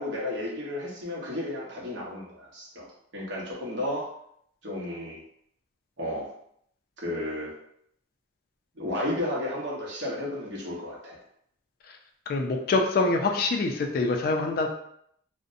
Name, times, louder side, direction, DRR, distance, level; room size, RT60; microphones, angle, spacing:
voice 1, 0.0-2.9 3.1-4.1 4.6-5.2 6.0-6.3 7.0-7.5 8.8-11.2, left 1 dB, 65° right, -4 dB, 0.8 m, -33 dB
voice 2, 12.3-14.7, left 3 dB, 50° left, 3 dB, 0.3 m, -25 dB
2.6 x 2.0 x 2.5 m, 0.70 s
head